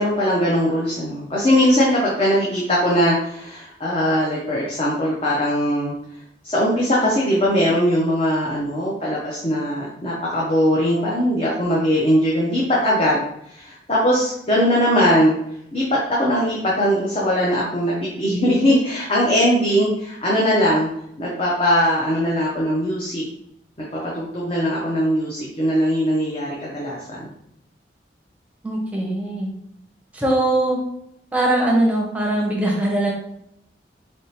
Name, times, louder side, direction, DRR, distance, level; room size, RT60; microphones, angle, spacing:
voice 1, 0.0-5.9 6.4-15.4 15.7-20.9 21.2-23.2 23.8-27.2, equal, 30° left, -5 dB, 0.7 m, -20 dB
voice 2, 28.6-29.5 30.1-30.8 31.3-33.1, right 1 dB, 10° right, -2 dB, 0.7 m, -21 dB
4.1 x 3.5 x 2.8 m, 0.77 s
head